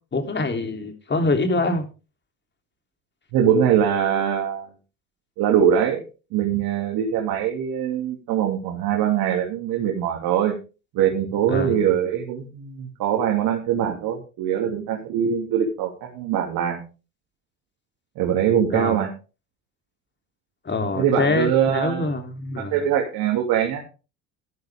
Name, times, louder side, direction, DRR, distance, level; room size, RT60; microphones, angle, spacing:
voice 1, 0.1-1.9 11.5-11.8 18.7-19.1 20.6-22.9, left 2 dB, 30° left, 6 dB, 3.4 m, -25 dB
voice 2, 3.3-4.7 5.4-6.0 6.3-10.5 10.9-16.8 18.2-19.1 20.9-22.1 22.6-23.8, right 9 dB, 65° right, 1 dB, 3.0 m, -22 dB
13.0 x 10.5 x 3.7 m, 0.33 s
hypercardioid pair, 70°, 39 cm